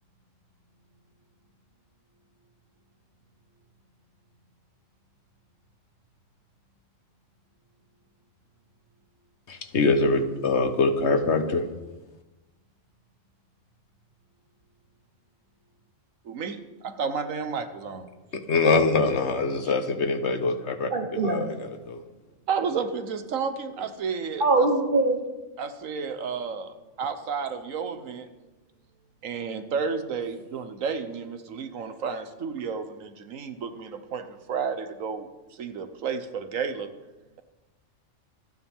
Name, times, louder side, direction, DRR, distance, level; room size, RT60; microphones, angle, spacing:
voice 1, 9.5-11.7 18.3-22.0, left 3 dB, 60° left, 7 dB, 1.5 m, -24 dB
voice 2, 16.2-18.1 22.5-24.7 25.6-28.3 29.2-36.9, right 5 dB, 80° right, 9 dB, 1.4 m, -32 dB
voice 3, 20.9-21.5 24.4-25.2, right 3 dB, 40° right, 2 dB, 1.4 m, -22 dB
26.0 x 9.8 x 3.6 m, 1.1 s
omnidirectional pair, 1.3 m